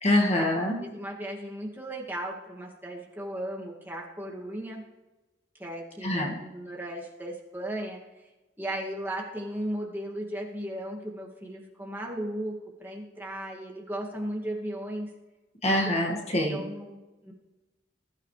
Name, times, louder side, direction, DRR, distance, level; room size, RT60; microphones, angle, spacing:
voice 1, 0.0-0.8 6.0-6.4 15.6-16.6, left 1 dB, 35° left, -1 dB, 2.0 m, -25 dB
voice 2, 0.8-4.8 5.6-8.0 8.6-15.1 15.7-15.8 16.5-17.3, right 1 dB, 10° right, -3 dB, 2.3 m, -36 dB
20.5 x 13.5 x 3.3 m, 1.1 s
head